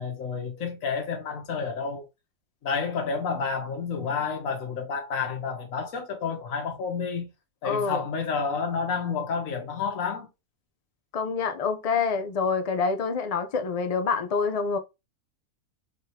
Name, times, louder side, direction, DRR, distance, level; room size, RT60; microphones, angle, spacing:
voice 1, 0.0-2.0 2.6-7.3 7.6-10.3, left 5 dB, 70° left, 1.5 m, -30 dB
voice 2, 7.6-8.0 11.1-14.8, left 5 dB, 55° left, 0.4 m, -26 dB
3.6 x 3.5 x 2.8 m
omnidirectional pair, 1.5 m